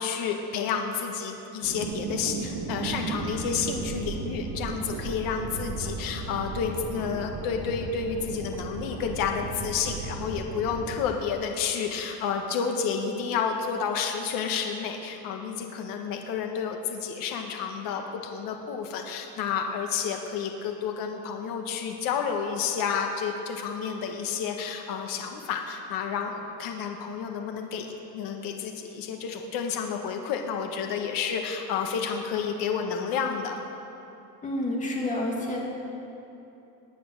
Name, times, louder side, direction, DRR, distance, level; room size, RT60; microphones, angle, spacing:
voice 1, 0.0-27.9 28.1-33.6, left 6 dB, 60° left, 3 dB, 1.5 m, -30 dB
sound 1, 1.6-11.0, right 3 dB, 65° right, 2.4 m, -35 dB
voice 2, 34.4-35.6, left 1 dB, 20° left, -2 dB, 2.6 m, -29 dB
19.0 x 9.7 x 6.6 m, 2.8 s
cardioid pair, 165°, 38 cm